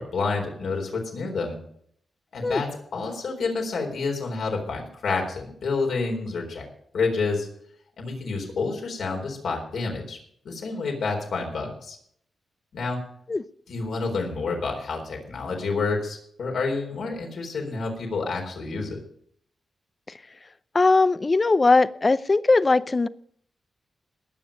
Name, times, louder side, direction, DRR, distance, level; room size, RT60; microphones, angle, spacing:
voice 1, 0.0-1.6 2.3-6.6 6.9-7.5 8.0-10.2 10.4-12.0 12.7-13.0 13.7-19.0, left 4 dB, 80° left, 1 dB, 4.0 m, -29 dB
voice 2, 20.7-23.1, left 3 dB, 35° left, 16 dB, 0.6 m, -20 dB
19.5 x 7.0 x 5.3 m, 0.65 s
cardioid pair, 65°, 0 cm